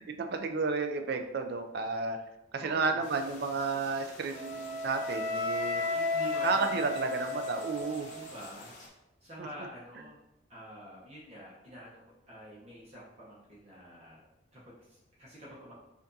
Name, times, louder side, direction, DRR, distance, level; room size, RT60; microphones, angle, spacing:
voice 1, 0.0-2.2 2.5-5.8 6.4-8.1, right 4 dB, 50° right, 6 dB, 0.4 m, -32 dB
voice 2, 2.6-3.1 5.9-6.9 8.1-8.7 9.2-10.2 10.5-14.2 14.5-15.7, right 1 dB, 30° right, -7 dB, 0.9 m, -47 dB
sound 1, 3.0-8.9, left 2 dB, 35° left, 0.7 m, -50 dB
Wind instrument woodwind instrument, 4.3-8.4, left 2 dB, 85° left, 1.1 m, -34 dB
5.7 x 2.6 x 2.7 m, 0.91 s
head